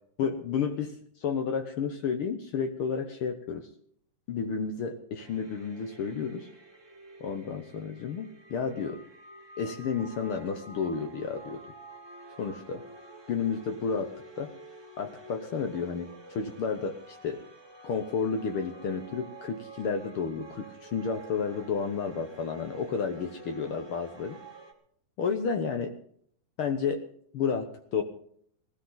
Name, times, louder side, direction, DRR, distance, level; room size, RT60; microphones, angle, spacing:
voice 1, 0.2-3.7 4.3-6.5 7.2-9.0 9.6-11.6 12.4-12.8 13.3-14.5 15.0-17.4 17.8-24.4 25.2-25.9 26.6-27.0 27.3-28.0, left 6 dB, 70° left, 6 dB, 1.3 m, -31 dB
sound 1, 5.2-24.7, right 1 dB, 15° right, 0.9 m, -49 dB
19.0 x 14.5 x 3.9 m, 0.63 s
omnidirectional pair, 3.6 m